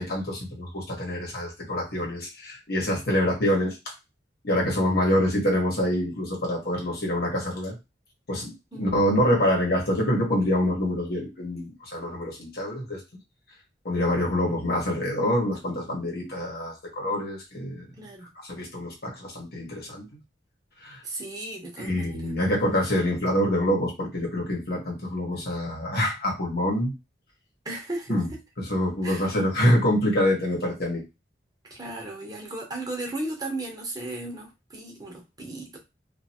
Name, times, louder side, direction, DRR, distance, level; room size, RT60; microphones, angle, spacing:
voice 1, 0.0-3.8 4.4-7.7 8.3-13.0 13.8-17.9 18.4-20.0 20.8-21.0 21.8-26.9 28.1-28.3 28.6-31.0, left 1 dB, 60° left, -2 dB, 1.3 m, -26 dB
voice 2, 18.0-18.3 21.0-22.3 25.3-25.5 27.6-28.2 29.0-29.3 31.7-35.9, right 2 dB, 20° right, 0 dB, 0.9 m, -36 dB
2.8 x 2.6 x 2.7 m, 0.24 s
head